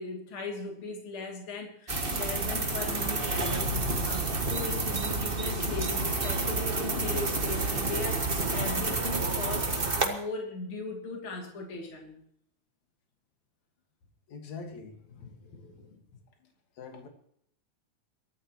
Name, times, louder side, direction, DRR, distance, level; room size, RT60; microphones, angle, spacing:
voice 1, 0.0-12.2, left 3 dB, 45° left, 3.5 m, -38 dB
sound 1, 1.9-10.1, right 3 dB, 30° right, 1.1 m, -29 dB
voice 2, 14.3-16.2 16.8-17.1, left 4 dB, 65° left, 3.1 m, -45 dB
23.5 x 13.0 x 3.1 m
omnidirectional pair, 3.6 m